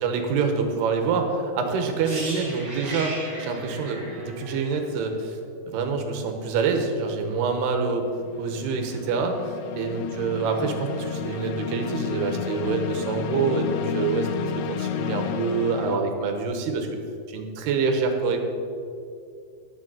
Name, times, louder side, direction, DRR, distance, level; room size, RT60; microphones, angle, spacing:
voice 1, 0.0-5.4 5.7-8.1 8.4-16.9 17.3-18.4, right 4 dB, 75° right, 5 dB, 2.9 m, -26 dB
sound 1, 1.9-2.2 8.1-16.0, left 9 dB, 85° left, 2.9 m, -32 dB
sound 2, 2.0-5.9 6.2-6.4, right 2 dB, 30° right, 2.5 m, -37 dB
10.5 x 6.7 x 7.7 m, 2.4 s
omnidirectional pair, 5.2 m